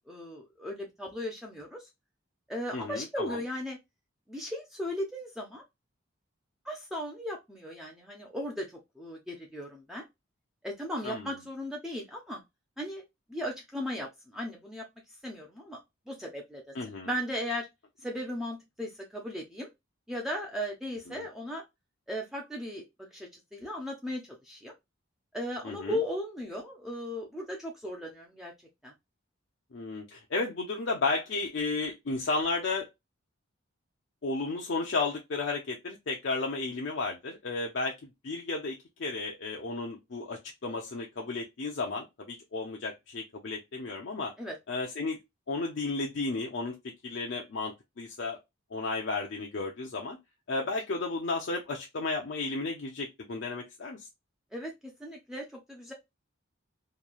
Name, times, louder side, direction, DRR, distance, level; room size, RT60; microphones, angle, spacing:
voice 1, 0.1-1.9 2.5-3.8 4.3-5.6 6.6-10.0 10.6-12.4 12.8-13.0 13.3-14.8 15.2-15.8 16.1-16.7 17.1-17.7 18.0-19.7 20.1-21.6 22.1-24.7 25.3-28.5 28.8-28.9 44.4-44.6 54.5-55.9, equal, ahead, 0.4 m, -37 dB
voice 2, 2.7-3.4 11.0-11.3 16.7-17.1 21.1-21.3 25.6-26.0 29.7-32.9 34.2-44.3 44.7-45.2 45.5-46.7 47.0-48.4 48.7-50.2 50.5-54.1, left 3 dB, 55° left, 0.5 m, -33 dB
3.0 x 2.2 x 2.3 m
head